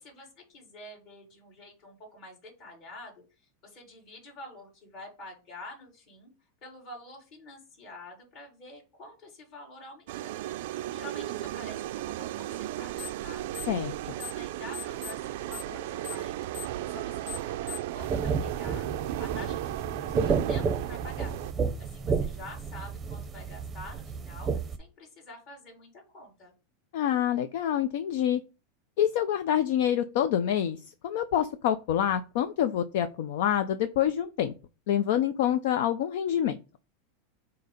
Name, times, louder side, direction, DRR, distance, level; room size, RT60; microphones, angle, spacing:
voice 1, 0.0-6.3 6.6-10.4 10.9-13.4 14.2-21.3 21.8-24.5 24.8-26.5, left 1 dB, 45° left, -1 dB, 3.7 m, -47 dB
sound 1, 10.1-21.5, right 14 dB, 70° right, 0.4 m, -35 dB
sound 2, 13.0-13.2 13.5-14.4 14.7-18.0, left 11 dB, 20° left, 1.4 m, -41 dB
sound 3, 18.0-24.8, right 5 dB, 20° right, 0.6 m, -31 dB
voice 2, 26.9-28.4 29.0-34.5 34.9-36.6, left 10 dB, 70° left, 11 dB, 0.5 m, -27 dB
7.8 x 2.9 x 5.0 m, 0.33 s
supercardioid pair, 140°, 0 cm